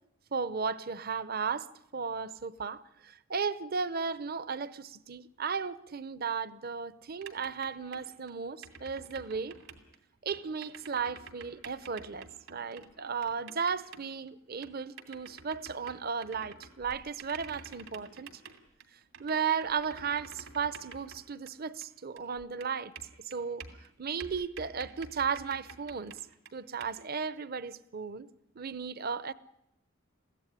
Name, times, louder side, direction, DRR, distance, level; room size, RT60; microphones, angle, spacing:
voice 1, 0.3-9.6 10.2-18.3 19.2-22.9 23.2-23.7 24.0-26.2 26.5-28.3 28.6-29.3, right 6 dB, 45° right, 0.7 m, -35 dB
sound 1, 7.1-8.3 8.6-10.0 10.3-14.3 14.6-21.9 22.2-23.9 24.2-26.5 26.8-26.9, right 5 dB, 75° right, 2.8 m, -49 dB
23.0 x 16.0 x 9.9 m
head